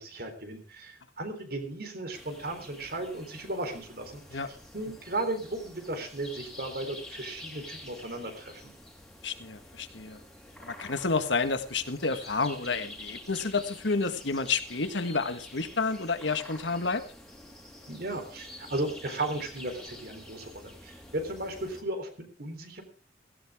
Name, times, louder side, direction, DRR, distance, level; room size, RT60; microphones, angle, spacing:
voice 1, 0.0-4.4 4.7-8.7 17.9-22.8, right 2 dB, 55° right, 7 dB, 3.8 m, -35 dB
sound 1, 2.1-21.8, left 1 dB, ahead, 3.4 m, -48 dB
voice 2, 9.2-10.2 10.6-17.0, left 4 dB, 75° left, 9 dB, 1.7 m, -30 dB
17.0 x 17.0 x 3.6 m, 0.38 s
head